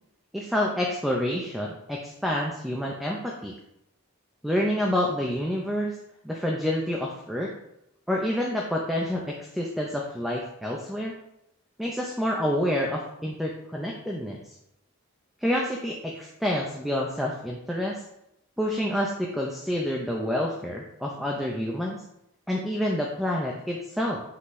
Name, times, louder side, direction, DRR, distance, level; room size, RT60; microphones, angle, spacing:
voice 1, 0.3-3.5 4.4-6.0 6.2-7.5 8.1-11.1 11.8-14.5 15.4-18.0 18.6-22.0 22.5-24.2, equal, ahead, -2 dB, 0.6 m, -28 dB
8.2 x 3.9 x 3.2 m, 0.81 s
head